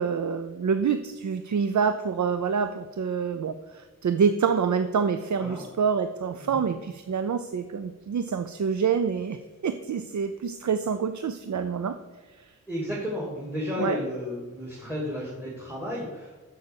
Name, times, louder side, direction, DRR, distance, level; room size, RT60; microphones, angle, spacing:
voice 1, 0.0-9.4 9.6-12.0 12.4-12.5 13.8-14.0, right 6 dB, 60° right, 10 dB, 0.5 m, -27 dB
voice 2, 12.7-16.3, left 1 dB, 5° right, -5 dB, 2.3 m, -32 dB
6.5 x 6.5 x 7.0 m, 1.3 s
wide cardioid pair, 80°, 33 cm